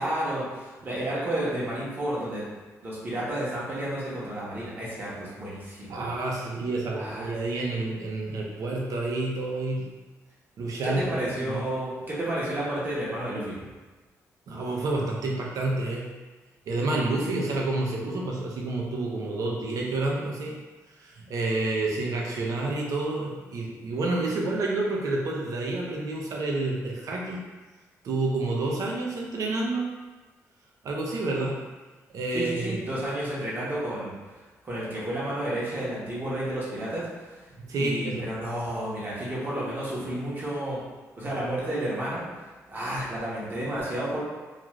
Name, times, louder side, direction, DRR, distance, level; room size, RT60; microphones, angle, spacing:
voice 1, 0.0-2.4 2.8-6.0 6.9-7.3 10.8-13.6 32.3-34.1 34.6-37.4 37.8-40.8 41.1-42.2 42.7-44.2, right 1 dB, 35° right, -8 dB, 0.9 m, -31 dB
voice 2, 5.9-9.9 10.6-11.7 14.5-16.1 16.7-20.5 21.0-27.4 28.0-29.9 30.8-31.6 32.1-32.9 37.6-38.3, right 2 dB, 65° right, -2 dB, 0.6 m, -29 dB
2.4 x 2.4 x 3.1 m, 1.2 s
cardioid pair, 95°, 6 cm